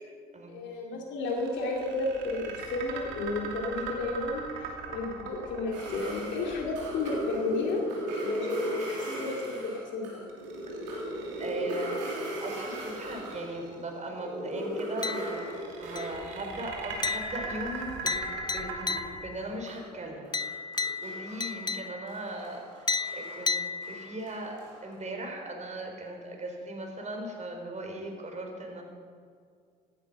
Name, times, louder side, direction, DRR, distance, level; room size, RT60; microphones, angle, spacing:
voice 1, 0.5-7.8 8.2-10.2, left 2 dB, 60° left, 0 dB, 2.6 m, -32 dB
sound 1, 1.3-7.5 10.3-11.9 12.4-13.7 15.0-19.0, right 5 dB, 70° right, 2.8 m, -40 dB
sound 2, 5.7-13.6 13.9-18.6 18.8-24.9, equal, 90° right, 3.2 m, -37 dB
voice 2, 11.4-11.9 12.4-15.5 15.8-20.3 21.0-23.6 23.9-24.5 24.8-28.8, right 1 dB, 35° right, 2 dB, 4.3 m, -38 dB
sound 3, 15.0-15.6 16.0-16.4 17.0-19.4 20.3-22.2 22.9-24.3, left 4 dB, 20° left, 0.6 m, -34 dB
16.0 x 11.0 x 5.5 m, 2.2 s
hypercardioid pair, 55°, 21 cm